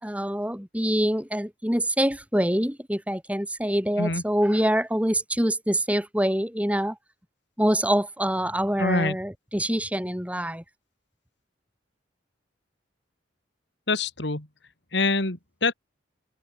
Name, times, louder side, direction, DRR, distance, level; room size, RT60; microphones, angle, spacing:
voice 1, 0.0-7.0 7.6-10.6, equal, 5° right, 3.4 m, -25 dB
voice 2, 8.8-9.2 13.9-14.5 14.9-15.7, left 3 dB, 60° left, 3.0 m, -25 dB
open air
head